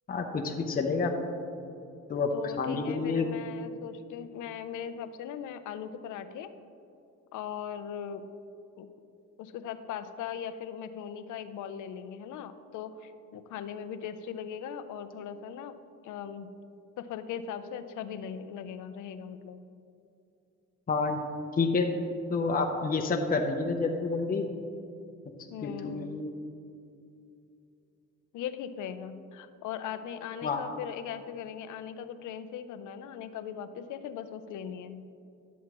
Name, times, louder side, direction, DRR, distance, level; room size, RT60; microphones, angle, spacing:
voice 1, 0.1-1.1 2.1-3.3 20.9-21.2 21.6-21.9 22.3-24.5 25.6-26.3 30.4-30.6, left 4 dB, 30° left, 2 dB, 0.7 m, -28 dB
voice 2, 2.3-6.5 7.3-8.3 8.8-8.9 9.4-15.8 16.0-16.5 17.0-19.6 25.5-26.1 28.3-35.1, left 8 dB, 80° left, 11 dB, 0.6 m, -39 dB
11.0 x 7.2 x 3.0 m, 2.6 s
cardioid pair, 90°, 30 cm